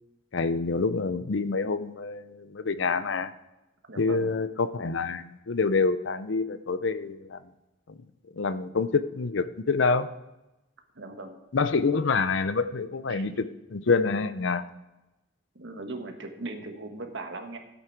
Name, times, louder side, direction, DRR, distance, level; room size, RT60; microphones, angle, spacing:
voice 1, 0.3-3.3 4.0-7.4 8.4-10.1 11.5-14.6, left 4 dB, 70° left, 13 dB, 0.6 m, -27 dB
voice 2, 3.9-4.3 10.9-11.4 13.1-13.4 15.5-17.6, right 2 dB, 65° right, 5 dB, 1.4 m, -39 dB
13.5 x 8.1 x 4.5 m, 0.97 s
head